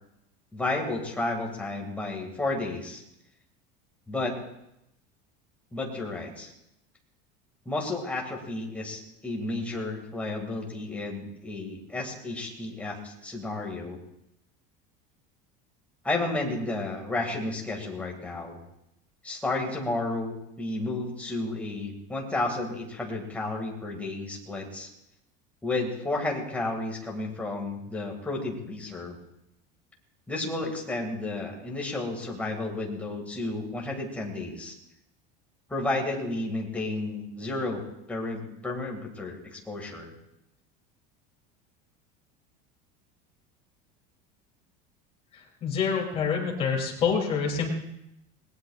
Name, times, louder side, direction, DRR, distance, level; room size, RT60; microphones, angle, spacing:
voice 1, 0.5-3.0 4.1-4.4 5.7-6.5 7.7-14.0 16.0-18.6 19.2-24.9 25.6-29.2 30.3-34.7 35.7-37.8 38.1-40.1, left 2 dB, 5° left, 0 dB, 2.0 m, -32 dB
voice 2, 45.6-47.7, left 6 dB, 30° left, -1 dB, 2.9 m, -26 dB
20.5 x 19.0 x 2.4 m, 0.83 s
cardioid pair, 170°, 21 cm